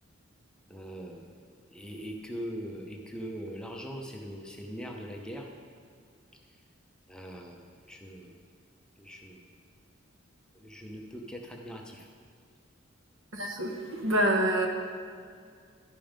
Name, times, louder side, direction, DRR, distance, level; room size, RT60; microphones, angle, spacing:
voice 1, 0.7-1.2 1.7-5.5 7.1-7.6 7.9-8.3 9.0-9.4 10.6-12.1, equal, 5° left, 0 dB, 0.7 m, -41 dB
voice 2, 13.3-14.7, right 1 dB, 75° right, 2 dB, 1.1 m, -27 dB
11.5 x 5.3 x 5.1 m, 2.2 s
head